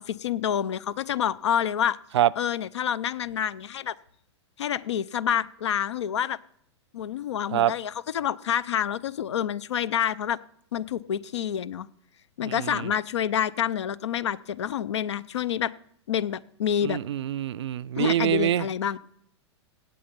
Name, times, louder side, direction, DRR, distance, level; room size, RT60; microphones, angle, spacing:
voice 1, 0.2-2.0 2.4-4.0 4.6-6.4 6.9-10.4 10.7-11.9 12.4-15.7 16.1-17.0 18.0-19.0, left 9 dB, 70° left, 0.5 m, -28 dB
voice 2, 12.4-12.9 16.8-18.7, right 12 dB, 70° right, 0.4 m, -25 dB
17.0 x 8.1 x 5.3 m
figure-of-eight pair, 100°, 15 cm